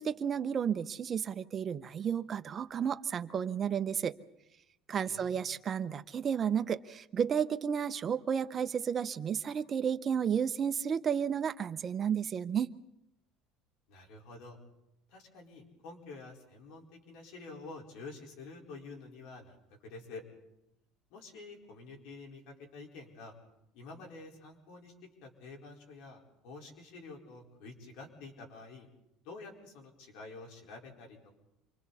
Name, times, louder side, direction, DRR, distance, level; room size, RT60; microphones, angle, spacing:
voice 1, 0.0-4.1 4.9-12.7, right 7 dB, 30° right, 11 dB, 0.8 m, -32 dB
voice 2, 5.0-5.6 13.9-14.6 15.1-19.6 19.8-20.2 21.1-23.3 23.7-24.9 25.2-28.9 29.2-31.4, left 3 dB, 70° left, 1 dB, 4.7 m, -49 dB
29.0 x 24.5 x 4.2 m, 0.86 s
cardioid pair, 140°, 0 cm